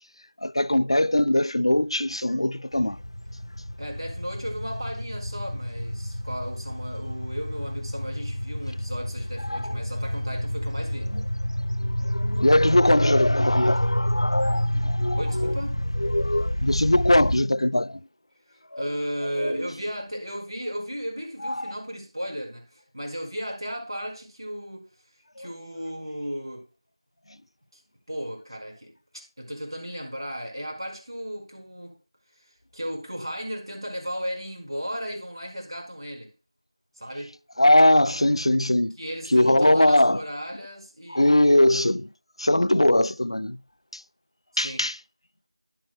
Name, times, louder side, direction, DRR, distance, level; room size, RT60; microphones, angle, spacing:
voice 1, 0.4-3.0 9.5-9.8 11.1-11.2 11.8-15.6 16.0-18.0 18.7-18.9 19.4-19.7 21.4-21.6 25.4-25.5 37.6-39.0 39.3-40.2 41.1-42.1 42.4-43.6 43.9-44.0 44.6-45.0, left 1 dB, 80° left, 0.4 m, -21 dB
sound 1, 2.7-17.4, equal, 60° left, 0.8 m, -28 dB
voice 2, 3.8-11.1 15.1-15.8 18.8-24.8 25.4-26.6 28.1-28.9 29.4-31.9 32.4-36.3 37.0-37.3 39.0-41.5 44.5-44.8, equal, 60° right, 4.7 m, -35 dB
12.0 x 11.0 x 2.2 m
figure-of-eight pair, 180°, 3 cm